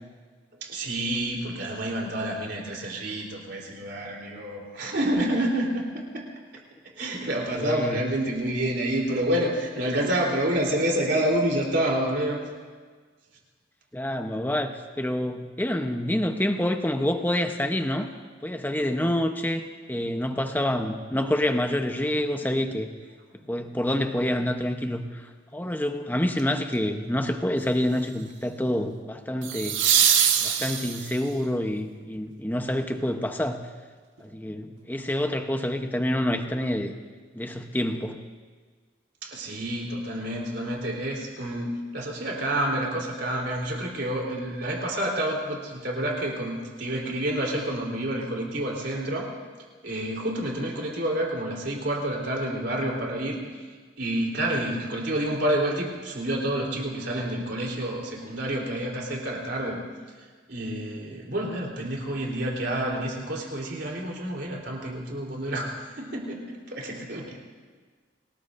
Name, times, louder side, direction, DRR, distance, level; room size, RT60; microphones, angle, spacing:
voice 1, 0.6-6.3 7.0-12.5 29.5-29.6 39.2-49.3 49.8-53.4 54.0-59.8 60.5-67.4, right 1 dB, 60° right, -2 dB, 3.7 m, -28 dB
voice 2, 7.5-8.0 13.9-18.1 18.4-22.9 23.5-29.8 30.4-33.7 34.2-36.9 37.3-38.2, left 1 dB, 10° left, 6 dB, 0.8 m, -27 dB
sound 1, 26.4-26.7 29.4-31.3 34.2-34.3, right 8 dB, 90° right, 1.5 m, -23 dB
28.5 x 19.0 x 2.6 m, 1.5 s
head